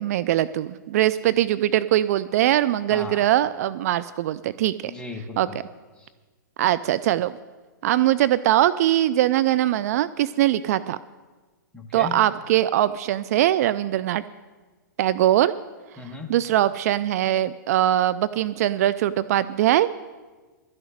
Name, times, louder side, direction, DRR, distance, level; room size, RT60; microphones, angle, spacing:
voice 1, 0.0-4.9 5.4-5.5 6.6-7.3 7.8-11.0 11.9-14.2 15.0-15.5 16.3-19.9, right 13 dB, 50° right, 15 dB, 0.4 m, -21 dB
voice 2, 2.9-3.2 4.8-5.6 6.0-6.1 11.7-12.2 16.0-16.3, left 3 dB, 10° left, 2 dB, 1.4 m, -36 dB
12.0 x 6.5 x 9.3 m, 1.3 s
hypercardioid pair, 115°, 11 cm